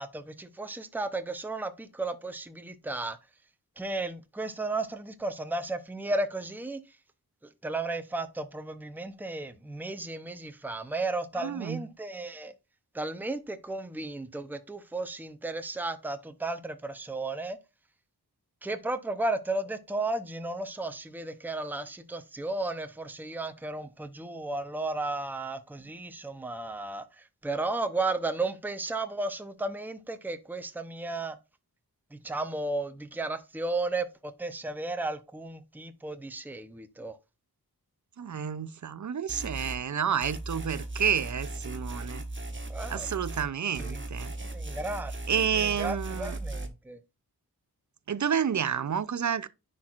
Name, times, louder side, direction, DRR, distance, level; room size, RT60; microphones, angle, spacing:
voice 1, 0.0-3.2 3.8-6.8 7.6-12.5 12.9-17.6 18.6-31.4 32.1-37.2 42.7-43.1 43.8-44.1 44.4-47.0, right 2 dB, 5° right, 0.7 m, -34 dB
voice 2, 11.4-11.8 38.2-42.3 42.9-44.3 45.3-46.4 48.1-49.5, right 8 dB, 50° right, 0.5 m, -30 dB
sound 1, 39.3-39.8 40.2-43.5 43.7-46.7, right 2 dB, 30° right, 1.3 m, -37 dB
10.0 x 4.4 x 2.4 m
wide cardioid pair, 75°, 38 cm